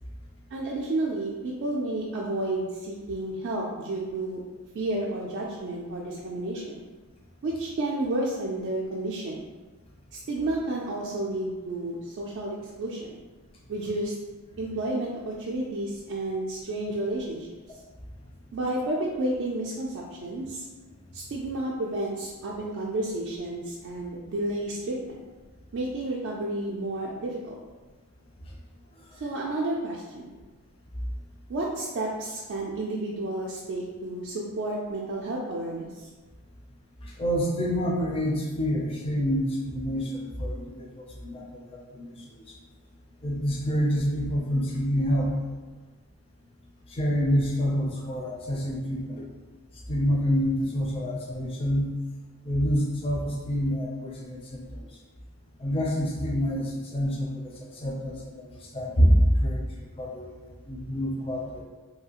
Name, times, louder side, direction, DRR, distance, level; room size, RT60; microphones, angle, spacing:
voice 1, 0.5-4.4 4.7-6.9 7.4-9.5 10.1-13.2 13.7-14.1 14.6-17.5 18.5-20.7 21.1-25.2 25.7-27.6 29.2-30.4 31.5-36.1, right 2 dB, 55° right, -4 dB, 0.3 m, -31 dB
voice 2, 37.0-42.1 43.2-45.3 46.9-49.2 49.9-51.9 52.4-54.6 55.6-57.5 57.8-59.7 60.0-60.3 60.7-61.6, equal, 25° left, -2 dB, 0.4 m, -27 dB
2.7 x 2.3 x 2.8 m, 1.3 s
head